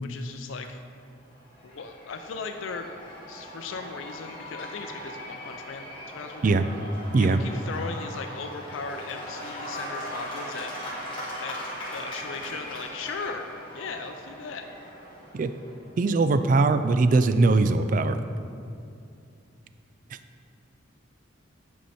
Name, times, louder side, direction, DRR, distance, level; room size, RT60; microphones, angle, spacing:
voice 1, 0.0-0.8 1.6-2.9 3.3-6.6 7.2-10.9 11.4-14.6, left 4 dB, 80° left, 6 dB, 0.4 m, -38 dB
Cheering / Applause / Crowd, 1.2-15.9, equal, 25° left, 2.0 m, -39 dB
voice 2, 16.0-18.2, right 3 dB, 40° right, 11 dB, 0.3 m, -21 dB
9.2 x 5.5 x 4.2 m, 2.5 s
head